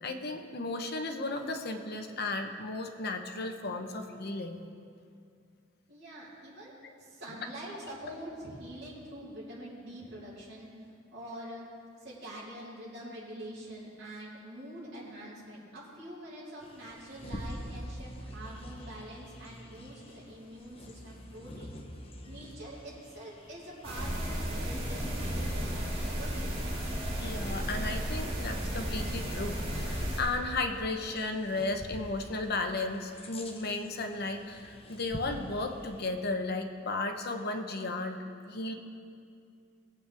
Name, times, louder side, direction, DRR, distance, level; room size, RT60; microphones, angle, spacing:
voice 1, 0.0-4.6 27.2-38.2 38.5-38.7, left 2 dB, 55° left, 5 dB, 0.9 m, -34 dB
voice 2, 5.9-10.7 11.1-11.6 12.0-21.7 22.2-26.7, right 1 dB, 60° right, -9 dB, 3.4 m, -45 dB
Bird vocalization bird call bird song, 16.6-36.1, equal, 30° left, 1.0 m, -45 dB
sound 1, 23.8-30.2, equal, 30° right, 2.4 m, -34 dB
20.0 x 8.3 x 3.5 m, 2.4 s
head